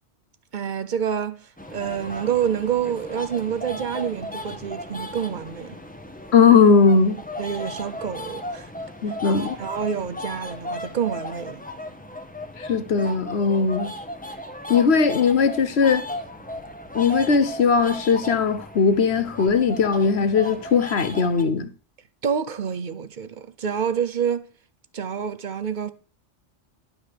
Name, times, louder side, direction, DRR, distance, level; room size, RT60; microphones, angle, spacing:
voice 1, 0.5-5.8 7.4-8.7 9.3-11.6 22.2-24.5 24.9-25.9, right 8 dB, 45° right, 0.8 m, -27 dB
sound 1, 1.6-21.4, left 1 dB, 10° left, 1.0 m, -36 dB
voice 2, 6.3-7.2 9.0-9.6 12.6-13.9 14.7-16.1 16.9-21.7, left 5 dB, 65° left, 1.2 m, -19 dB
11.5 x 5.8 x 6.6 m
omnidirectional pair, 1.2 m